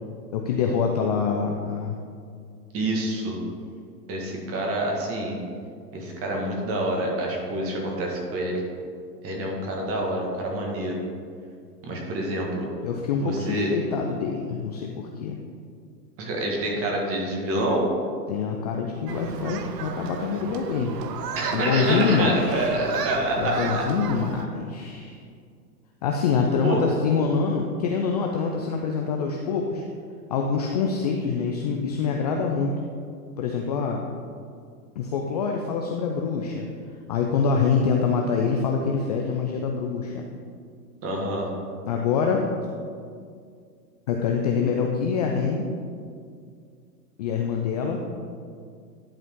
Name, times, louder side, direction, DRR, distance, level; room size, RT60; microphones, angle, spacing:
voice 1, 0.3-2.0 12.8-15.4 18.3-21.0 21.5-22.8 23.4-25.2 26.0-29.8 30.3-32.7 33.4-34.1 35.0-36.7 37.1-40.2 41.8-42.5 44.1-45.7 47.2-48.0, left 5 dB, 30° left, 1 dB, 0.4 m, -25 dB
voice 2, 2.7-3.4 4.1-5.4 5.9-8.6 9.2-11.0 11.8-12.7 13.2-13.7 16.2-17.9 21.3-23.9 26.6-26.8 41.0-41.5, right 1 dB, 30° right, -1 dB, 1.7 m, -27 dB
Human group actions, 19.1-24.5, right 7 dB, 80° right, 0.8 m, -34 dB
11.0 x 5.0 x 3.7 m, 2.2 s
hypercardioid pair, 115°, 48 cm